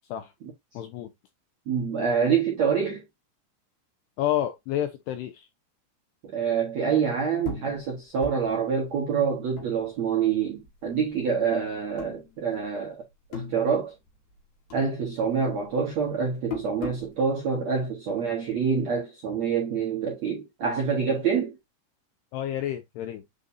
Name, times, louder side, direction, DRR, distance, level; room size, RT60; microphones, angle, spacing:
voice 1, 0.8-1.1 4.2-5.5 22.3-23.2, left 11 dB, 90° left, 2.4 m, -29 dB
voice 2, 1.6-3.0 6.2-13.0 13.3-13.9 14.7-21.6, right 6 dB, 70° right, 1.6 m, -26 dB
sound 1, 7.4-10.3 10.6-11.5 11.9-12.8 13.1-14.4 14.7-17.1, left 3 dB, 60° left, 2.0 m, -39 dB
9.2 x 4.0 x 2.7 m
omnidirectional pair, 5.6 m